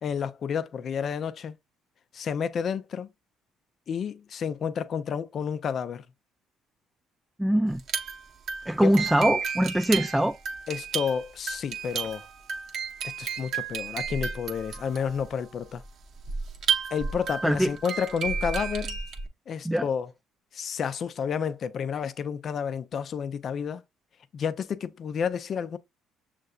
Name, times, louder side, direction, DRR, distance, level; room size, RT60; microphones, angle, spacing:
voice 1, 0.0-1.5 2.1-3.1 3.9-6.1 8.8-8.9 10.7-12.3 13.2-15.8 16.9-19.0 19.5-20.1 20.5-23.8 24.3-25.8, left 7 dB, 55° left, 0.5 m, -30 dB
voice 2, 7.4-7.8 8.7-10.4 17.4-17.7 19.6-19.9, equal, 5° right, 0.3 m, -23 dB
sound 1, 7.7-19.3, right 6 dB, 65° right, 1.0 m, -32 dB
6.5 x 3.2 x 2.4 m
supercardioid pair, 80°, 0 cm